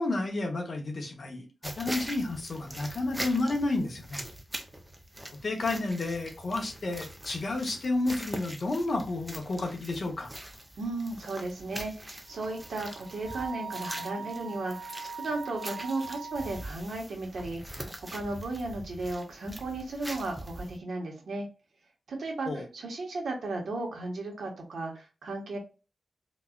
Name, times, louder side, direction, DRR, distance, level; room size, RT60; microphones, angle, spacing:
voice 1, 0.0-4.2 5.3-10.3 22.5-22.7, left 2 dB, 45° left, 3 dB, 0.8 m, -31 dB
sound 1, 1.6-20.8, right 1 dB, 5° right, 0.5 m, -43 dB
voice 2, 10.8-21.5 22.1-25.6, right 2 dB, 75° right, 1 dB, 1.0 m, -35 dB
Wind instrument woodwind instrument, 12.3-16.6, right 5 dB, 40° right, 1.0 m, -41 dB
3.9 x 2.3 x 2.3 m, 0.32 s
wide cardioid pair, 165°, 0 cm